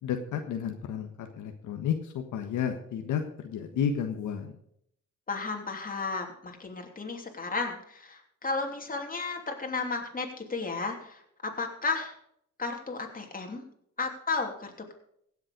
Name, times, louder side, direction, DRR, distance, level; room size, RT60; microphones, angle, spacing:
voice 1, 0.0-4.5, left 8 dB, 80° left, 5 dB, 1.4 m, -32 dB
voice 2, 5.3-12.2 12.6-13.6 14.0-14.9, left 4 dB, 30° left, 3 dB, 3.1 m, -33 dB
16.5 x 7.5 x 5.3 m, 0.71 s
cardioid pair, 75°, 30 cm